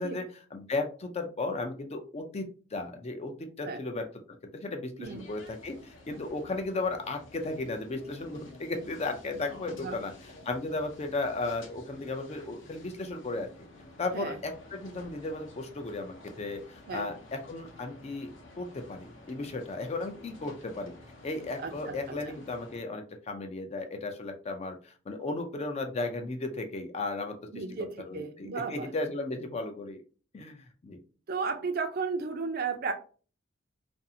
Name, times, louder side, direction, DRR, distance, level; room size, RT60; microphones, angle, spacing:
voice 1, 0.0-4.1 4.4-10.1 10.4-13.5 14.0-18.3 18.6-20.9 21.2-27.6 28.1-30.0 30.3-31.0, left 2 dB, 35° left, 5 dB, 0.4 m, -35 dB
sound 1, 5.0-22.8, left 2 dB, 75° left, 0.7 m, -52 dB
voice 2, 21.6-21.9 27.5-28.9 31.3-32.9, right 4 dB, 50° right, 7 dB, 0.4 m, -34 dB
2.5 x 2.4 x 2.6 m, 0.39 s
head